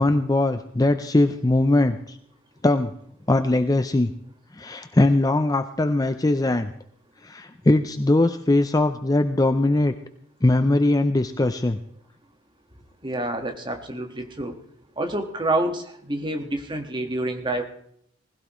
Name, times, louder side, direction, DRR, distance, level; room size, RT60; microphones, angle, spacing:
voice 1, 0.0-2.2 2.6-2.9 3.3-4.1 4.5-6.7 7.2-9.9 10.4-11.8, left 2 dB, 15° left, 9 dB, 0.5 m, -21 dB
voice 2, 13.0-14.6 15.0-17.6, right 1 dB, 20° right, 5 dB, 1.5 m, -28 dB
20.0 x 16.0 x 3.1 m, 0.67 s
head